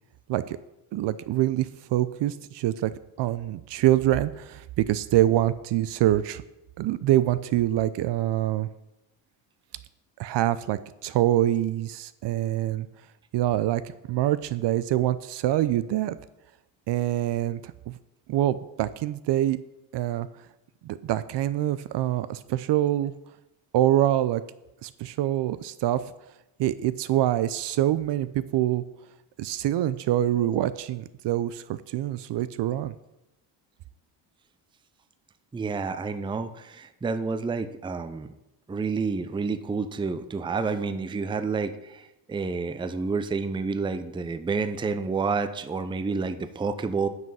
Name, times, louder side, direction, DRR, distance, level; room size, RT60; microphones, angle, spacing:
voice 1, 0.9-2.9 3.2-6.4 6.8-8.7 10.2-12.9 13.3-13.8 14.1-16.2 16.9-17.6 17.9-18.0 18.3-19.6 19.9-20.3 20.8-23.1 23.7-24.4 24.8-26.0 26.6-28.8 29.4-33.0, right 13 dB, 60° right, 15 dB, 0.6 m, -25 dB
voice 2, 35.5-38.3 38.7-47.1, right 4 dB, 10° right, 10 dB, 0.5 m, -29 dB
9.4 x 5.3 x 5.5 m, 0.91 s
cardioid pair, 100°, 49 cm